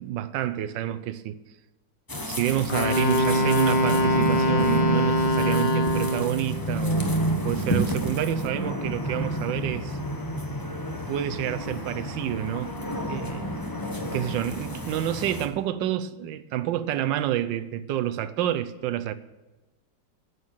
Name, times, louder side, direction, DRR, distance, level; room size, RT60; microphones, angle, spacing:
voice 1, 0.0-1.4 2.3-7.0 7.4-10.0 11.1-12.8 13.1-13.6 14.1-19.1, right 12 dB, 85° right, 1.3 m, -28 dB
sound 1, 2.1-15.5, equal, 20° left, 0.6 m, -30 dB
Wind instrument woodwind instrument, 2.7-6.4, equal, 85° left, 2.3 m, -23 dB
9.6 x 7.0 x 8.8 m
omnidirectional pair, 2.0 m